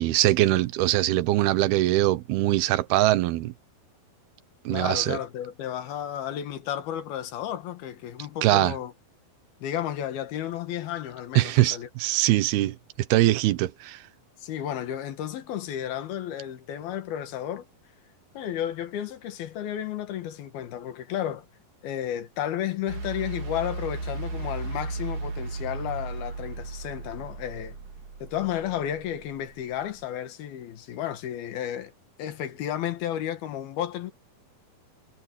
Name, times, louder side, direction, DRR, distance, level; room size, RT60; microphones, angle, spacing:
voice 1, 0.0-3.5 4.7-5.2 8.4-8.7 11.4-12.8 13.1-14.0, right 16 dB, 85° right, 2.9 m, -22 dB
voice 2, 4.7-8.9 9.6-11.9 14.4-17.7 18.4-21.5 21.8-27.8 28.2-31.9 32.2-34.1, left 10 dB, 75° left, 3.5 m, -32 dB
sound 1, 22.9-30.0, right 3 dB, 55° right, 4.9 m, -35 dB
omnidirectional pair, 4.4 m